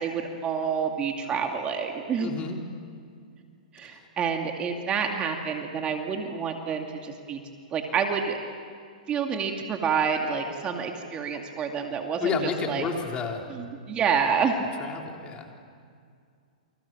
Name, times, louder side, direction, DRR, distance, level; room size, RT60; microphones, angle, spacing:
voice 1, 0.0-2.3 3.7-7.4 7.7-8.4 9.1-12.9 13.5-14.5, right 6 dB, 25° right, 3 dB, 2.5 m, -28 dB
voice 2, 2.2-2.6 3.9-4.0 12.2-13.5 14.8-15.6, left 5 dB, 25° left, 2 dB, 3.7 m, -31 dB
29.5 x 26.5 x 7.5 m, 2.2 s
hypercardioid pair, 130°, 4 cm